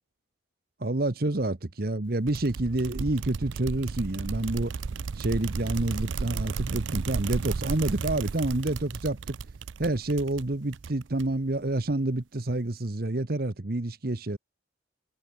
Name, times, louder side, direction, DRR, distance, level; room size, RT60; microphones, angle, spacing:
voice 1, 0.8-4.7 5.1-9.3 9.8-14.4, right 2 dB, 50° right, 1.1 m, -28 dB
sound 1, 2.3-11.5, right 5 dB, 75° right, 0.5 m, -34 dB
head